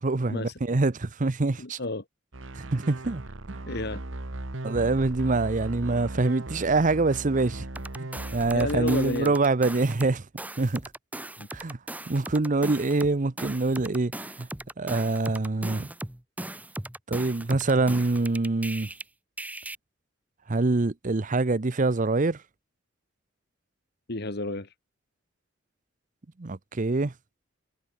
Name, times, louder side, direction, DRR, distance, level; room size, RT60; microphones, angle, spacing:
voice 1, 0.0-1.8 2.5-3.2 3.5-3.6 4.6-7.7 8.0-10.3 10.6-10.9 11.5-11.8 12.1-14.5 14.8-15.9 17.1-18.9 20.5-22.4 26.4-27.1, right 3 dB, 40° right, 0.8 m, -25 dB
voice 2, 1.6-2.0 3.7-4.0 8.5-9.3 11.4-11.5 24.1-24.7, left 2 dB, 60° left, 2.0 m, -31 dB
sound 1, 2.3-9.3, right 2 dB, 85° right, 1.6 m, -37 dB
sound 2, 7.8-10.1 10.4-19.0 19.4-19.8, right 1 dB, 10° right, 1.1 m, -38 dB
head